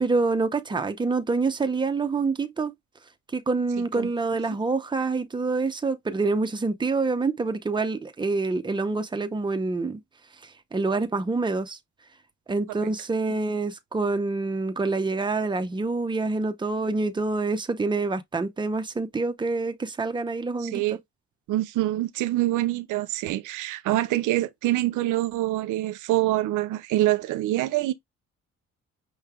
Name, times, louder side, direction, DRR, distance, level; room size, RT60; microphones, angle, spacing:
voice 1, 0.0-2.7 3.3-10.0 10.7-11.8 12.5-20.8, right 3 dB, 15° right, 0.7 m, -26 dB
voice 2, 20.6-21.0 21.5-27.9, right 15 dB, 85° right, 0.6 m, -25 dB
5.7 x 3.1 x 2.3 m
cardioid pair, 90°, 30 cm